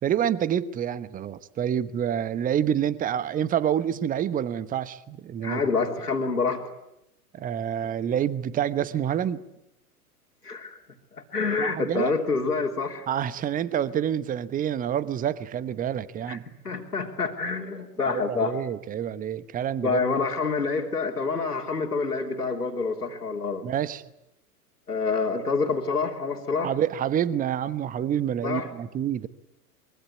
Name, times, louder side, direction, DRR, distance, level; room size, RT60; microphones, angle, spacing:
voice 1, 0.0-5.6 7.3-9.4 11.6-12.1 13.1-16.4 18.1-20.0 23.6-24.0 26.6-29.3, right 9 dB, 20° right, 1.1 m, -27 dB
voice 2, 5.4-6.6 10.4-10.8 11.2-13.1 16.3-16.4 16.6-18.6 19.8-23.7 24.9-26.7 28.4-28.7, left 4 dB, 85° left, 3.4 m, -27 dB
25.0 x 23.5 x 9.6 m
figure-of-eight pair, 100°, 46 cm